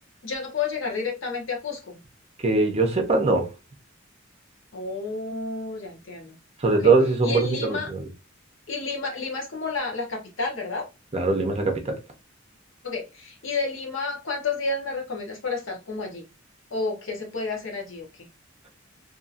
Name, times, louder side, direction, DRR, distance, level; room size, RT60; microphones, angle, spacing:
voice 1, 0.2-2.0 4.7-6.4 6.7-6.9 7.2-7.9 8.7-10.9 12.8-16.2 16.7-18.3, left 4 dB, 70° left, 1.0 m, -31 dB
voice 2, 2.4-3.5 6.6-8.0 11.1-11.9, right 3 dB, 30° right, 0.6 m, -21 dB
2.7 x 2.6 x 2.4 m
head